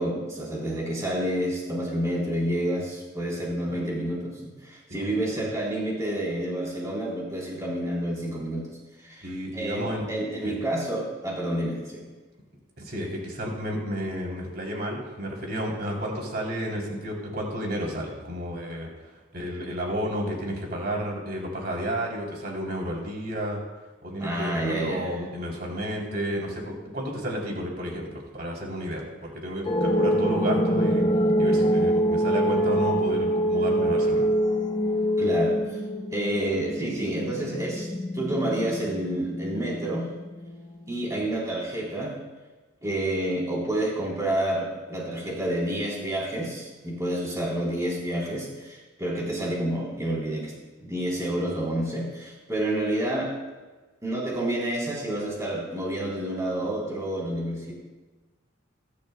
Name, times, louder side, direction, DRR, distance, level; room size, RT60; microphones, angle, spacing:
voice 1, 0.0-8.7 9.0-12.0 24.2-25.1 35.2-35.8 36.1-37.9 38.1-40.1 40.9-42.2 42.8-50.5 50.8-53.3 54.0-57.7, right 1 dB, 15° right, -4 dB, 3.3 m, -29 dB
voice 2, 9.2-10.0 10.4-10.5 12.8-18.9 19.3-23.6 24.0-31.1 31.4-34.3 41.1-41.2, equal, 50° right, -1 dB, 3.2 m, -32 dB
sound 1, 29.6-40.7, equal, 20° left, 0.9 m, -25 dB
21.5 x 11.5 x 2.2 m, 1.3 s
head